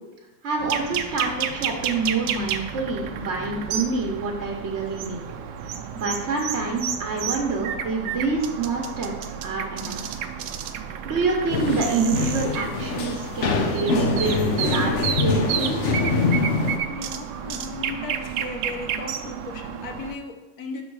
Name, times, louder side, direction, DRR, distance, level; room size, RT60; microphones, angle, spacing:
voice 1, 0.4-5.2 5.9-10.2 11.0-16.0, right 3 dB, 50° right, 0 dB, 0.9 m, -27 dB
sound 1, 0.6-20.1, right 8 dB, 75° right, 1.0 m, -31 dB
sound 2, 11.5-16.8, left 3 dB, 90° left, 0.6 m, -24 dB
voice 2, 16.9-20.8, left 4 dB, 60° left, 4 dB, 1.0 m, -36 dB
6.1 x 5.5 x 4.7 m, 1.0 s
omnidirectional pair, 2.2 m